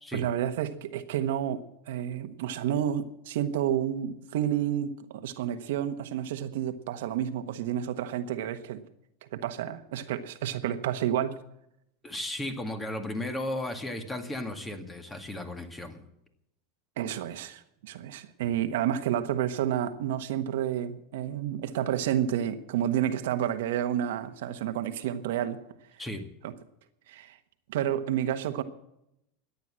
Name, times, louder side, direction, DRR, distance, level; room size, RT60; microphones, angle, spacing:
voice 1, 0.1-8.8 9.3-11.4 17.0-25.6 26.4-26.5 27.1-27.4 27.7-28.6, right 10 dB, 80° right, 9 dB, 1.3 m, -30 dB
voice 2, 12.0-16.1 26.0-26.3, left 1 dB, 15° left, 7 dB, 2.1 m, -35 dB
14.0 x 9.7 x 7.6 m, 0.79 s
supercardioid pair, 125°, 0 cm